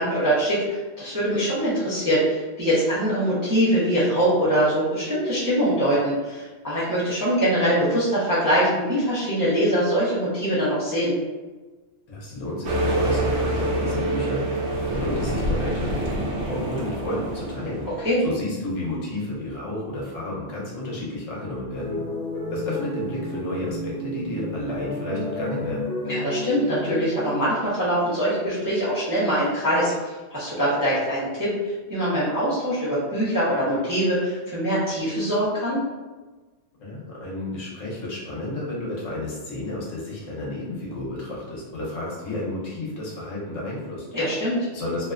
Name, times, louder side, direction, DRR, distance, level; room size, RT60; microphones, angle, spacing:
voice 1, 0.0-11.1 18.0-18.2 26.0-35.8 44.1-44.6, equal, 25° right, -11 dB, 0.5 m, -23 dB
voice 2, 12.1-14.4 14.9-17.8 18.2-22.0 22.5-25.8 36.8-44.1 44.7-45.1, left 1 dB, 75° left, -5 dB, 1.1 m, -31 dB
sound 1, 12.6-18.2, right 1 dB, 70° right, 0.9 m, -26 dB
sound 2, 21.7-27.3, left 1 dB, 50° left, 0.5 m, -31 dB
2.7 x 2.1 x 2.4 m, 1.3 s
omnidirectional pair, 1.3 m